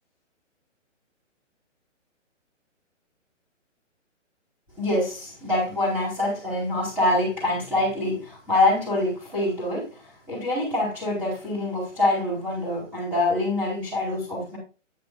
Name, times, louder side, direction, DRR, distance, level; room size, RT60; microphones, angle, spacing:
voice 1, 4.8-14.6, left 2 dB, 5° right, 4.4 m, -25 dB
10.0 x 9.1 x 2.5 m
hypercardioid pair, 170°, 37 cm